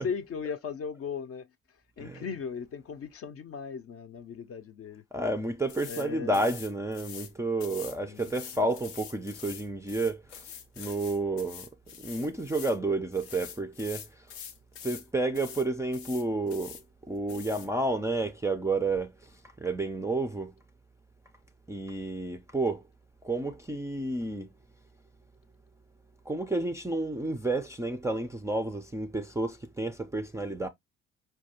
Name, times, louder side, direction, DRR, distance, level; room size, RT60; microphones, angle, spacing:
voice 1, 0.0-5.0 5.8-6.5 8.0-8.7, left 6 dB, 40° left, 0.5 m, -38 dB
voice 2, 5.1-11.7 12.0-14.3 14.8-16.8 17.1-19.3 19.6-20.5 21.7-22.8 23.2-24.5 26.3-30.7, right 2 dB, 10° right, 0.4 m, -31 dB
sound 1, 5.7-6.1 6.3-7.3 7.6-12.8 13.1-15.1 15.3-15.7 15.9-16.8 17.3-17.7, left 8 dB, 85° left, 0.6 m, -45 dB
4.5 x 2.2 x 2.8 m
hypercardioid pair, 55°, 35 cm